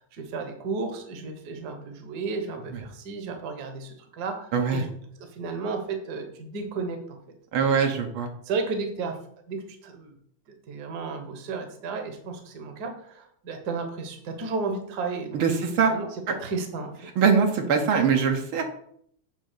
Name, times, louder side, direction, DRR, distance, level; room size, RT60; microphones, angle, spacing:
voice 1, 0.1-4.9 5.4-7.2 8.5-9.2 9.5-10.1 10.7-16.1 16.4-16.9, right 4 dB, 55° right, 5 dB, 1.5 m, -33 dB
voice 2, 4.5-4.8 7.5-8.3 15.3-15.9 16.3-16.4 17.2-18.6, right 6 dB, 75° right, 4 dB, 1.8 m, -22 dB
7.9 x 3.5 x 6.6 m, 0.65 s
omnidirectional pair, 2.3 m